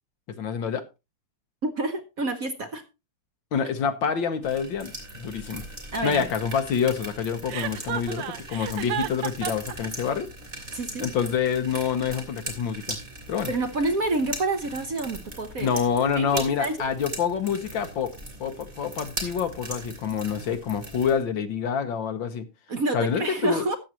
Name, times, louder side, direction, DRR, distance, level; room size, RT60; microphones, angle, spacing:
voice 1, 0.3-0.8 3.5-5.7 6.0-10.3 11.0-13.0 13.3-13.5 15.6-18.1 18.4-22.5 22.9-23.7, left 7 dB, 65° left, 1.7 m, -27 dB
voice 2, 1.6-2.8 5.9-6.3 10.7-11.1 13.5-15.7 16.2-16.8 22.7-23.8, right 2 dB, 50° right, 1.2 m, -28 dB
sound 1, 4.4-21.2, right 1 dB, 25° right, 3.2 m, -39 dB
Chuckle chortle, 7.5-9.7, right 11 dB, 85° right, 1.8 m, -31 dB
14.0 x 9.4 x 2.9 m
omnidirectional pair, 2.4 m